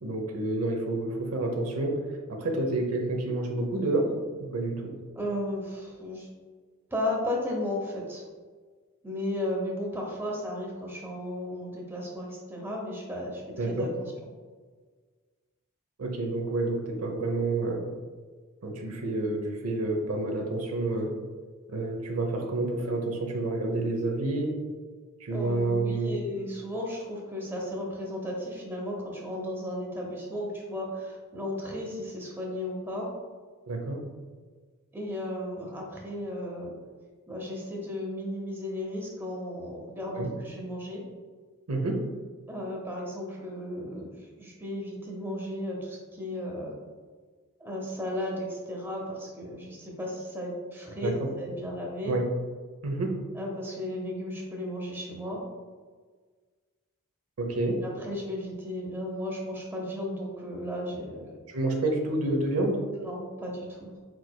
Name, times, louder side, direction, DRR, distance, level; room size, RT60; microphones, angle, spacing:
voice 1, 0.0-4.9 13.6-13.9 16.0-17.9 18.6-21.1 21.7-24.6 25.2-26.1 33.7-34.0 40.1-40.3 41.7-42.0 51.0-51.3 52.0-52.3 52.8-53.2 57.4-57.8 61.5-62.8, right 2 dB, 80° right, 2 dB, 0.7 m, -29 dB
voice 2, 5.2-6.3 6.9-8.2 9.0-13.9 25.3-33.1 34.9-36.7 37.3-41.0 42.5-46.8 47.6-52.2 53.3-55.4 57.8-61.3 63.0-64.0, left 1 dB, 10° right, -2 dB, 0.7 m, -34 dB
4.6 x 4.3 x 2.2 m, 1.5 s
head